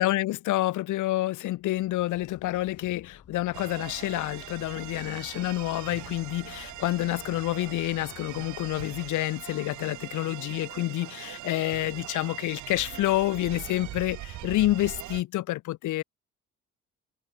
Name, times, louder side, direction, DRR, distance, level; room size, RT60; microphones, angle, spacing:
voice 1, 0.0-16.0, left 16 dB, 80° left, 0.9 m, -28 dB
sound 1, 1.5-8.8, left 8 dB, 55° left, 3.1 m, -53 dB
sound 2, 3.5-15.2, right 16 dB, 75° right, 0.7 m, -41 dB
cardioid pair, 90°, 30 cm